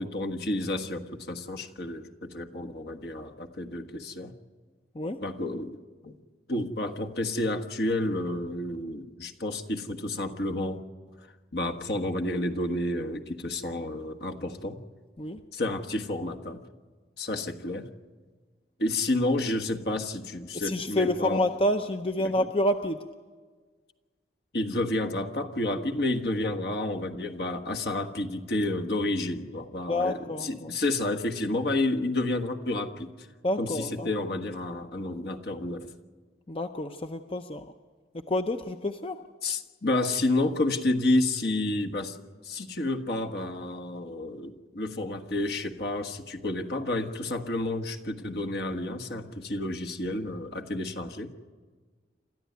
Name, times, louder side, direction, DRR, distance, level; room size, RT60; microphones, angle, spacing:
voice 1, 0.0-4.3 5.2-5.8 6.0-6.1 6.5-10.8 11.5-14.8 15.5-16.6 17.2-17.9 18.8-21.4 22.2-22.4 24.5-33.1 33.6-35.9 39.4-42.2 42.4-51.3, left 2 dB, 60° left, 3 dB, 1.5 m, -30 dB
voice 2, 20.5-23.0 29.9-30.7 33.4-34.1 36.5-37.6 38.3-39.2, left 1 dB, 30° left, 7 dB, 0.6 m, -28 dB
28.0 x 13.5 x 9.4 m, 1.5 s
head